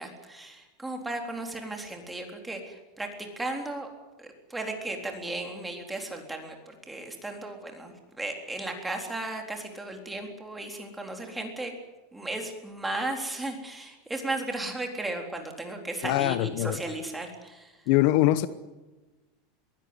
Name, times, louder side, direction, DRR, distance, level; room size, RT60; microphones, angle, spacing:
voice 1, 0.0-3.9 4.2-11.7 12.1-17.9, right 2 dB, 5° right, 3.8 m, -35 dB
voice 2, 16.0-16.8 17.9-18.5, left 15 dB, 60° left, 0.9 m, -23 dB
22.5 x 16.0 x 9.8 m
supercardioid pair, 150°, 0 cm